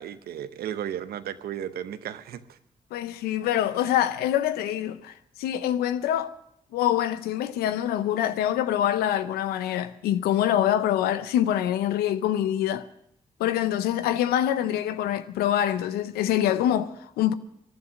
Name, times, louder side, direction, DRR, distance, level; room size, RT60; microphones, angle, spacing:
voice 1, 0.0-2.6, right 10 dB, 80° right, 0.8 m, -34 dB
voice 2, 2.9-6.3 6.7-12.8 13.4-17.3, left 11 dB, 90° left, 0.5 m, -25 dB
18.0 x 11.0 x 6.2 m
supercardioid pair, 40°, 16 cm